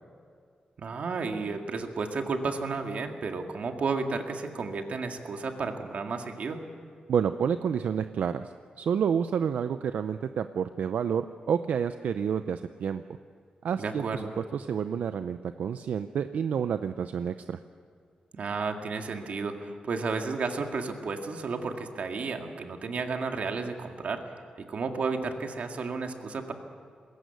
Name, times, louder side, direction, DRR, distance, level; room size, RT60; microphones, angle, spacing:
voice 1, 0.8-6.6 13.8-14.4 18.3-24.2 24.7-26.5, right 4 dB, 65° right, 4 dB, 2.0 m, -32 dB
voice 2, 7.1-13.0 13.6-14.2 14.5-17.6, right 7 dB, 85° right, 10 dB, 0.6 m, -29 dB
21.0 x 17.5 x 8.2 m, 2.2 s
wide cardioid pair, 120°, 3 cm